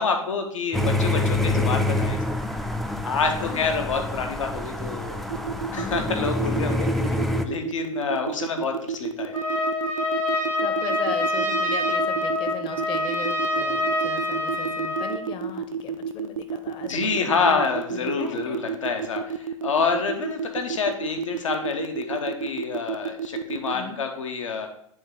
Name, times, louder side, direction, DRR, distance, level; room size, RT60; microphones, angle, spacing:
voice 1, 0.0-2.4 3.0-5.2 5.7-6.9 7.4-9.3 16.9-24.7, left 5 dB, 70° left, 5 dB, 0.9 m, -27 dB
sound 1, 0.7-7.5, left 1 dB, ahead, 0.3 m, -26 dB
voice 2, 3.4-3.8 5.7-6.0 10.3-17.6 17.9-18.7 23.7-24.0, left 6 dB, 30° left, 8 dB, 0.8 m, -37 dB
sound 2, 5.3-23.7, right 8 dB, 80° right, 0.4 m, -30 dB
Trumpet, 9.3-15.2, left 1 dB, 90° left, 1.5 m, -26 dB
8.1 x 3.5 x 3.7 m, 0.68 s
figure-of-eight pair, 90°, 17 cm